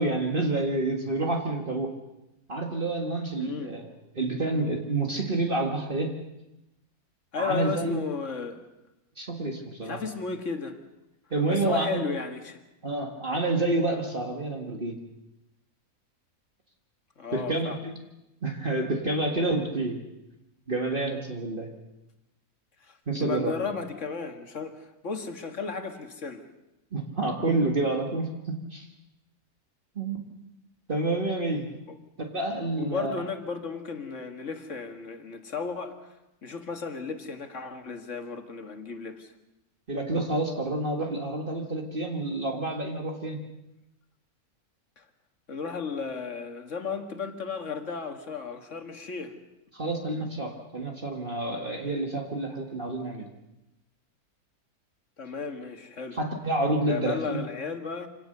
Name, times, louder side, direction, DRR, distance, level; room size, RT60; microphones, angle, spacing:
voice 1, 0.0-1.9 2.5-3.9 4.2-6.2 7.4-8.0 9.2-10.0 11.3-12.0 12.8-15.0 17.3-17.9 18.4-20.0 20.7-21.7 23.1-23.6 26.9-28.9 30.0-30.2 30.9-31.7 32.2-33.1 39.9-43.4 49.7-53.3 56.1-57.4, right 2 dB, 35° right, 1.9 m, -28 dB
voice 2, 3.4-3.8 7.3-8.7 9.8-10.8 11.5-12.6 17.2-17.8 22.8-26.5 31.9-32.0 32.8-36.2 36.4-39.3 45.0-45.1 45.5-49.4 55.2-56.2 56.9-58.1, left 5 dB, 55° left, 2.0 m, -34 dB
25.5 x 18.0 x 6.7 m
omnidirectional pair, 1.5 m